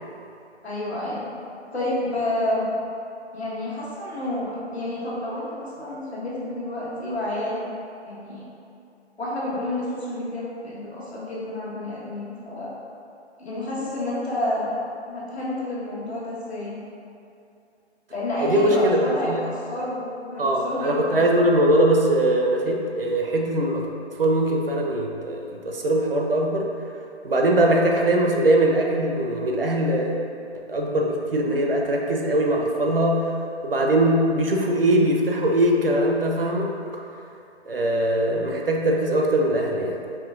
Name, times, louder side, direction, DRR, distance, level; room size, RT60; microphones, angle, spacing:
voice 1, 0.6-1.3 1.7-2.7 3.3-7.6 8.0-8.4 9.2-12.7 13.4-14.8 15.1-16.8 18.1-21.3, left 1 dB, 65° left, -7 dB, 1.4 m, -29 dB
voice 2, 18.4-19.4 20.4-23.9 24.1-26.7 27.2-30.2 30.7-33.3 33.6-36.7 37.7-40.0, right 1 dB, 55° right, 0 dB, 0.6 m, -21 dB
5.0 x 3.2 x 2.5 m, 2.6 s
figure-of-eight pair, 155°, 35 cm